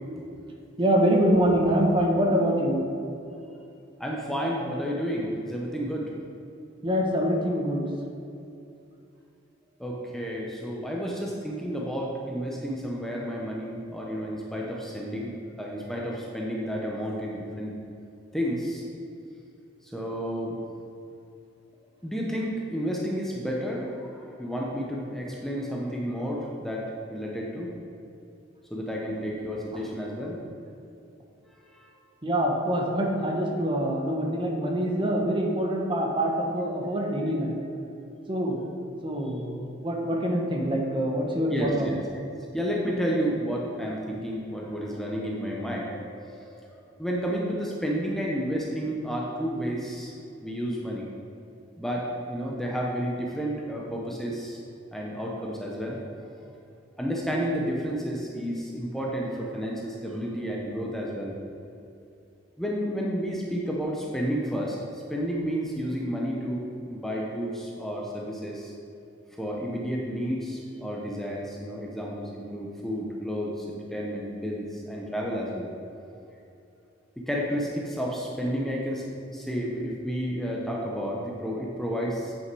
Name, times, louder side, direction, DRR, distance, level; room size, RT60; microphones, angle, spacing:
voice 1, 0.8-2.8 6.8-7.9 29.7-29.8 32.2-37.6 38.3-38.6 39.0-42.0, equal, 25° right, 0 dB, 1.0 m, -25 dB
voice 2, 4.0-6.1 9.8-17.7 18.3-18.8 19.8-20.6 22.0-27.7 28.7-30.4 31.6-31.9 41.5-42.0 42.5-50.1 50.4-51.1 51.8-54.6 54.9-56.0 57.0-61.4 62.6-68.7 69.4-75.7 77.2-79.0 79.3-82.3, equal, ahead, -3 dB, 0.8 m, -31 dB
8.4 x 6.4 x 4.7 m, 2.7 s
head